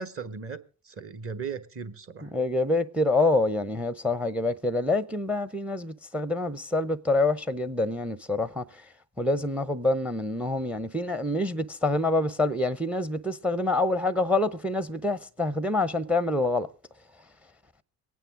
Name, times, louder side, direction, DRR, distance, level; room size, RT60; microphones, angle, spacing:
voice 1, 0.0-2.3 11.2-11.3, right 5 dB, 30° right, 1.2 m, -37 dB
voice 2, 2.2-8.6 9.2-16.7, left 2 dB, 5° right, 0.6 m, -26 dB
22.5 x 9.1 x 3.7 m
hypercardioid pair, 55°, 48 cm